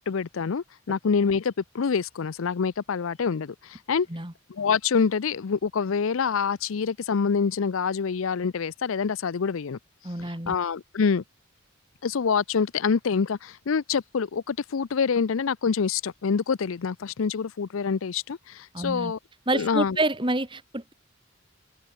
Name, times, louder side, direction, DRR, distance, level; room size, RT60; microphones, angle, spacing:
voice 1, 0.0-4.1 4.5-9.8 10.2-11.2 12.0-19.2 19.5-20.0, left 5 dB, 75° left, 0.5 m, -26 dB
voice 2, 10.0-10.6 18.7-19.1 19.5-20.9, right 2 dB, 25° right, 2.5 m, -28 dB
head